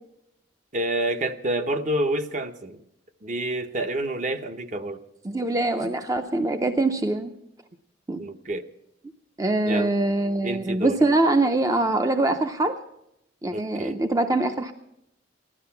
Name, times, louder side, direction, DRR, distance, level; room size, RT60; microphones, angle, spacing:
voice 1, 0.7-2.8 3.2-5.0 8.2-8.6 9.7-9.9 10.4-11.0 13.5-13.9, right 1 dB, 45° right, 7 dB, 0.8 m, -28 dB
voice 2, 5.2-7.3 8.1-8.2 9.4-12.8 13.4-14.7, right 2 dB, 20° right, 7 dB, 0.5 m, -23 dB
16.0 x 12.5 x 5.8 m, 0.82 s
head